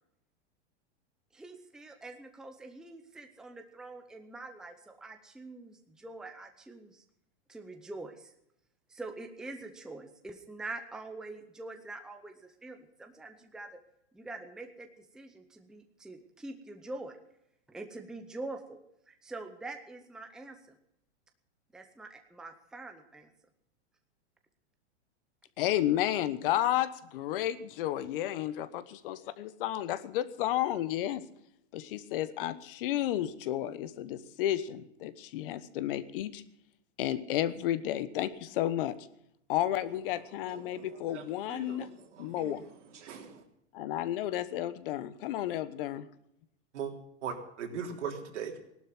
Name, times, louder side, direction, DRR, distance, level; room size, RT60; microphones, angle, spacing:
voice 1, 1.3-7.0 7.5-8.3 8.9-13.8 14.1-14.9 15.1-17.2 17.7-18.8 19.1-20.6 21.7-23.3, right 2 dB, ahead, 6 dB, 0.8 m, -45 dB
voice 2, 25.6-31.2 31.7-36.4 37.0-39.0 39.5-41.9 42.2-42.6 43.7-46.1, left 12 dB, 50° left, 15 dB, 1.2 m, -32 dB
voice 3, 40.5-40.8 41.1-42.6 42.9-43.4 46.7-46.9 47.2-48.6, right 7 dB, 80° right, 3 dB, 3.5 m, -40 dB
17.5 x 12.0 x 6.0 m, 0.78 s
supercardioid pair, 155°, 35 cm